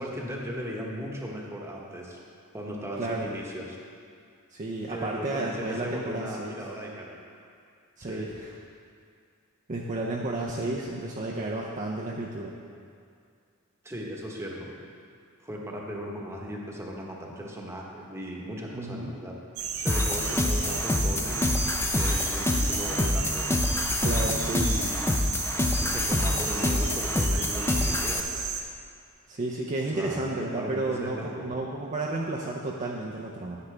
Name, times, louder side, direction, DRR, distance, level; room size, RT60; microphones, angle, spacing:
voice 1, 0.0-2.2 2.5-3.8 4.9-7.1 8.0-8.3 10.6-10.7 13.8-14.7 15.4-19.4 19.8-21.5 21.9-23.6 24.5-25.1 25.8-28.2 29.9-31.5, equal, 10° right, -2 dB, 1.1 m, -37 dB
voice 2, 3.0-3.3 4.5-6.6 8.0-8.5 9.7-12.5 18.7-19.1 24.0-24.8 29.3-33.6, right 2 dB, 35° right, -2 dB, 0.6 m, -32 dB
sound 1, 19.6-28.6, right 6 dB, 70° right, 0.8 m, -33 dB
sound 2, 19.9-28.2, left 2 dB, 10° left, 0.4 m, -26 dB
9.7 x 8.4 x 3.4 m, 2.3 s
head